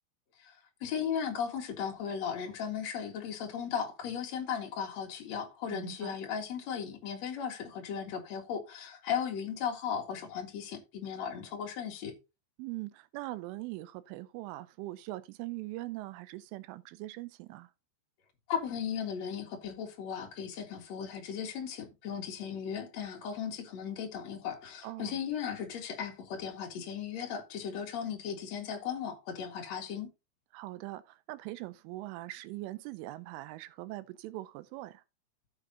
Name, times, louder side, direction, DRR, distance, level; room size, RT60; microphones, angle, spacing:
voice 1, 0.4-12.1 18.5-30.1, left 7 dB, 50° left, 2.1 m, -36 dB
voice 2, 5.7-6.2 12.6-17.7 24.8-25.2 30.5-35.0, right 18 dB, 85° right, 3.1 m, -42 dB
12.5 x 8.4 x 2.8 m
omnidirectional pair, 5.8 m